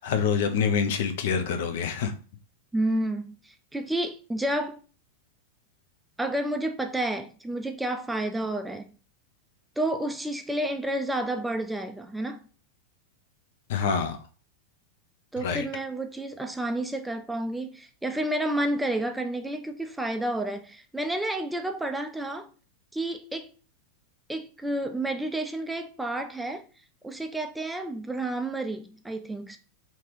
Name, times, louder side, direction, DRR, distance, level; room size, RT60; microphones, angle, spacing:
voice 1, 0.0-2.1 13.7-14.2 15.4-15.6, left 6 dB, 55° left, 0.5 m, -26 dB
voice 2, 2.7-4.8 6.2-8.9 9.8-12.5 15.3-22.5 22.9-23.5 24.3-26.6 27.0-29.6, right 1 dB, 5° right, 0.3 m, -30 dB
2.9 x 2.8 x 3.2 m
figure-of-eight pair, 90°, 0 cm